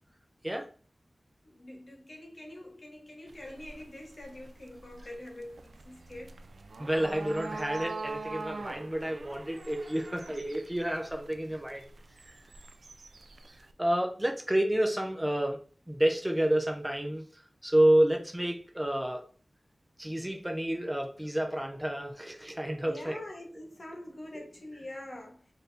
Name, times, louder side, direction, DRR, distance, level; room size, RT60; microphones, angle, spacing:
voice 1, 1.4-6.4 19.1-19.2 22.8-25.5, left 1 dB, 55° left, 1.1 m, -45 dB
sound 1, 3.3-13.7, right 3 dB, 85° right, 0.3 m, -44 dB
voice 2, 6.8-11.8 13.8-15.6 15.9-17.2 17.6-19.2 20.0-23.2 24.3-24.4, right 1 dB, 15° right, 0.6 m, -29 dB
4.1 x 2.7 x 3.3 m
wide cardioid pair, 80°, 0 cm